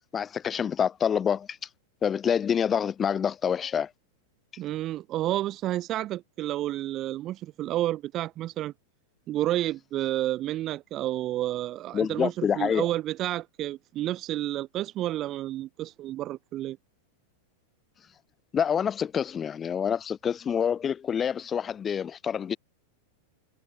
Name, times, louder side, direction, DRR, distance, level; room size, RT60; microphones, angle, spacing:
voice 1, 0.1-1.6 2.0-3.9 11.9-12.9 18.5-22.6, left 8 dB, 20° left, 1.9 m, -27 dB
voice 2, 4.6-8.7 9.3-16.8, right 14 dB, 30° right, 0.4 m, -30 dB
supercardioid pair, 155°, 0 cm